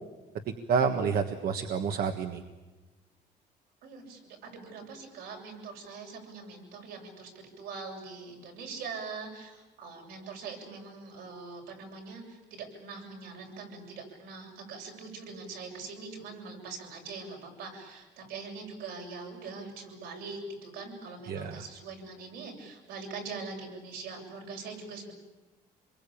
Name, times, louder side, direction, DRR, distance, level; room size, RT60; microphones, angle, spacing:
voice 1, 0.7-2.4 21.3-21.6, right 6 dB, 65° right, 5 dB, 1.6 m, -28 dB
voice 2, 3.8-7.3 7.6-25.1, right 4 dB, 85° right, 1 dB, 7.5 m, -42 dB
26.0 x 22.5 x 8.7 m, 1.2 s
cardioid pair, 110°, 17 cm